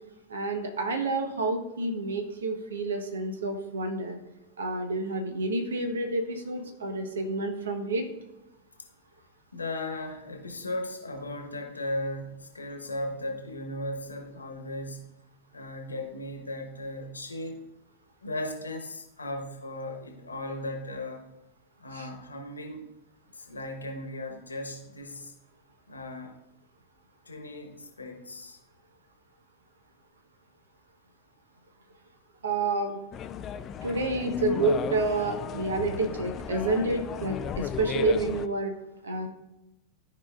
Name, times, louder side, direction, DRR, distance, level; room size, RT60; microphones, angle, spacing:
voice 1, 0.3-4.2 4.6-8.1 21.9-22.1 32.4-33.0 33.8-38.7 39.0-39.3, right 2 dB, 65° right, 6 dB, 1.1 m, -29 dB
voice 2, 9.5-15.1 15.5-17.6 18.2-21.2 21.8-22.9 23.3-25.3 25.9-26.3 27.3-28.6, left 1 dB, 80° left, 3 dB, 1.2 m, -36 dB
sound 1, 33.1-38.5, left 9 dB, 30° left, 0.3 m, -35 dB
13.5 x 4.9 x 2.4 m, 0.90 s
figure-of-eight pair, 90°, 0 cm